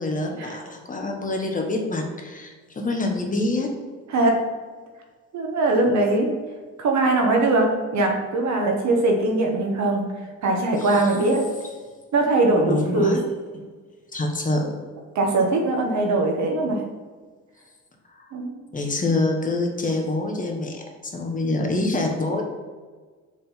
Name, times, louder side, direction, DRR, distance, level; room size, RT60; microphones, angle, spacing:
voice 1, 0.0-3.7 10.8-11.0 12.7-13.2 14.1-14.8 18.2-18.3 18.7-22.4, left 2 dB, 25° left, 2 dB, 1.2 m, -26 dB
voice 2, 5.3-6.3 6.8-10.1 10.4-11.4 12.1-13.2 15.1-16.8 18.3-18.5, right 2 dB, 65° right, 2 dB, 1.3 m, -21 dB
5.2 x 3.7 x 5.7 m, 1.4 s
cardioid pair, 90°, 30 cm